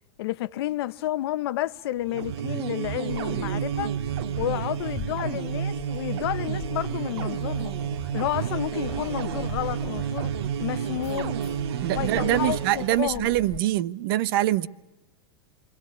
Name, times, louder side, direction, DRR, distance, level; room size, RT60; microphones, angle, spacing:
voice 1, 0.2-3.9 4.4-7.8 8.1-11.4 11.9-13.3, left 14 dB, 70° left, 1.0 m, -31 dB
sound 1, 2.0-13.0, right 8 dB, 80° right, 1.9 m, -30 dB
Keys jangling, 3.1-13.6, left 8 dB, 30° left, 2.0 m, -43 dB
voice 2, 11.8-14.7, right 15 dB, 60° right, 1.1 m, -24 dB
27.5 x 24.5 x 8.6 m
supercardioid pair, 150°, 14 cm